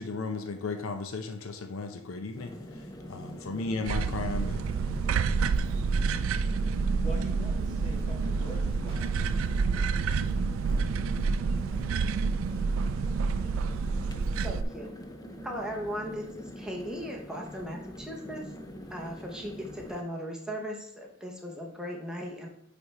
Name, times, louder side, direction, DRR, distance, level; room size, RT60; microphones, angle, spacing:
voice 1, 0.0-4.7, left 3 dB, 70° left, 6 dB, 0.6 m, -35 dB
sound 1, 2.3-20.0, equal, 20° left, 0.5 m, -43 dB
sound 2, 3.8-14.6, right 5 dB, 70° right, 0.3 m, -28 dB
voice 2, 7.0-9.1, right 1 dB, 35° left, 0 dB, 1.5 m, -44 dB
sound 3, 8.9-12.1, equal, 25° right, 1.6 m, -46 dB
voice 3, 14.4-14.9 15.4-18.4 18.9-22.5, equal, 5° right, -1 dB, 0.9 m, -37 dB
9.4 x 3.5 x 4.2 m, 0.73 s
head